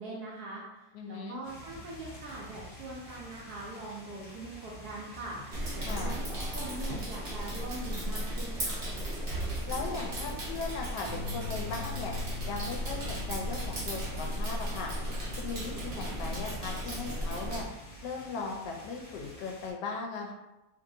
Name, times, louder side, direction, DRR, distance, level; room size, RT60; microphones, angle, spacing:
voice 1, 0.0-6.3 6.5-8.8, right 2 dB, 70° right, -4 dB, 1.0 m, -42 dB
voice 2, 0.9-1.4 5.8-6.2 9.7-12.1 12.5-14.9 15.3-17.6 18.0-20.3, left 4 dB, 75° left, 1 dB, 1.1 m, -38 dB
sound 1, 1.4-19.7, left 1 dB, 35° left, 0.9 m, -49 dB
sound 2, 5.5-17.6, right 1 dB, 50° right, 0.7 m, -35 dB
sound 3, 11.1-17.3, left 7 dB, 90° right, 0.6 m, -44 dB
3.0 x 2.7 x 2.6 m, 0.99 s
omnidirectional pair, 2.0 m